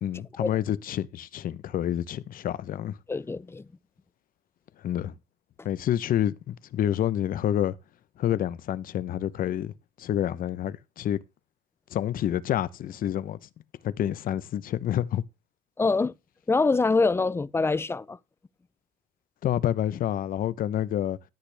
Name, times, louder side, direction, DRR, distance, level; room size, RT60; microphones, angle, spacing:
voice 1, 0.0-3.0 4.8-5.1 5.6-7.8 8.2-11.2 11.9-13.4 13.8-15.2 19.4-21.2, left 11 dB, 55° left, 0.8 m, -28 dB
voice 2, 3.1-3.7 15.8-16.1 16.5-18.2, left 3 dB, 15° left, 0.4 m, -24 dB
13.0 x 8.0 x 3.4 m
cardioid pair, 110°, 17 cm